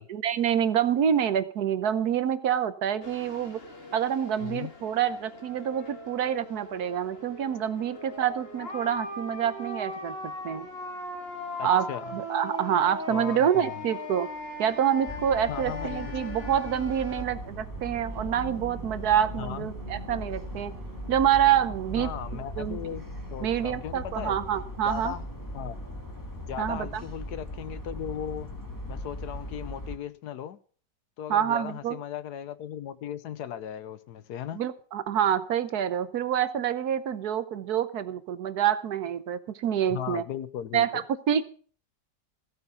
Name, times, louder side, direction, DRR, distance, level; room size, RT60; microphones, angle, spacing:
voice 1, 0.0-3.6 3.9-10.7 11.6-14.3 14.6-20.7 21.1-22.9 23.4-25.1 26.6-27.0 31.3-32.0 34.5-40.2 40.7-41.4, right 9 dB, 65° right, 13 dB, 1.3 m, -27 dB
sound 1, 3.0-17.2, left 2 dB, 35° left, 2.1 m, -40 dB
voice 2, 4.4-4.7 11.6-12.1 13.1-13.7 15.5-16.1 19.4-19.7 22.0-23.0 23.3-24.4 24.8-25.2 25.5-25.8 26.5-28.5 28.9-30.6 31.2-34.6 39.9-41.0, left 10 dB, 70° left, 15 dB, 1.3 m, -37 dB
sound 2, 14.3-27.8, right 5 dB, 25° right, 2.1 m, -47 dB
sound 3, 15.1-30.0, equal, 10° left, 1.9 m, -39 dB
15.0 x 8.9 x 5.7 m, 0.42 s
omnidirectional pair, 1.8 m